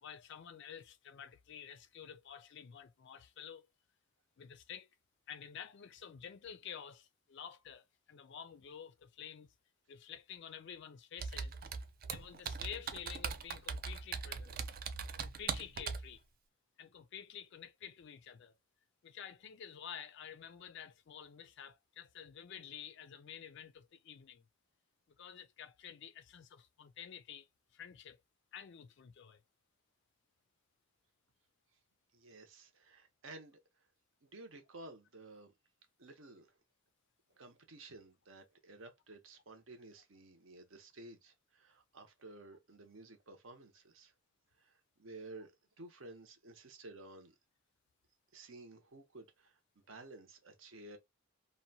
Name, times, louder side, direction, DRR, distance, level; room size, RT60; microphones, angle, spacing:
voice 1, 0.0-3.7 4.4-4.9 5.3-9.5 9.9-11.6 12.1-14.6 15.2-16.2 16.8-18.5 19.0-24.4 25.2-27.5 27.7-28.2 28.5-29.4, left 8 dB, 50° left, 0.3 m, -50 dB
Computer keyboard, 11.2-16.1, right 5 dB, 40° right, 0.3 m, -40 dB
voice 2, 32.1-33.9 34.2-35.5 36.0-36.5 37.3-44.1 44.6-45.5 45.8-47.3 48.3-51.0, right 2 dB, 60° right, 0.7 m, -54 dB
2.7 x 2.1 x 2.6 m
head